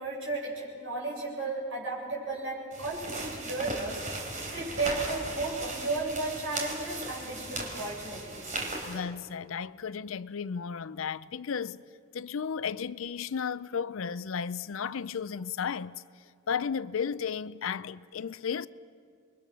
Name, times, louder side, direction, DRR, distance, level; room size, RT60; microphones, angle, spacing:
voice 1, 0.0-4.1 4.5-8.5, right 3 dB, 65° right, 7.3 m, -34 dB
sound 1, 2.7-9.0, right 2 dB, 35° right, 3.6 m, -37 dB
voice 2, 8.9-11.8 12.1-16.0 16.5-18.7, left 6 dB, 75° left, 0.5 m, -34 dB
28.5 x 22.5 x 6.3 m
head